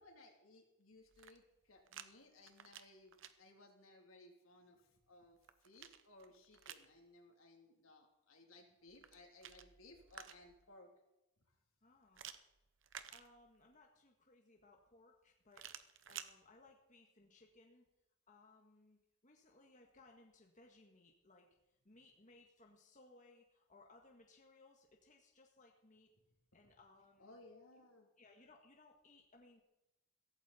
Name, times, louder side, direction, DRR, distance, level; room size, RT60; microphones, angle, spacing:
voice 1, 0.0-5.4 5.6-10.9 27.2-28.1, left 2 dB, 80° left, 2 dB, 3.3 m, -62 dB
sound 1, 1.0-2.1 2.4-3.3 5.0-6.9 8.9-10.7 12.1-13.7 15.5-16.3, right 9 dB, 65° right, 0.9 m, -54 dB
voice 2, 11.8-12.2 13.1-15.7 16.1-17.8 18.3-26.1 26.5-27.4 27.8-27.9 28.2-29.6, left 2 dB, 35° left, 1 dB, 1.7 m, -65 dB
16.5 x 15.0 x 4.3 m, 0.95 s
head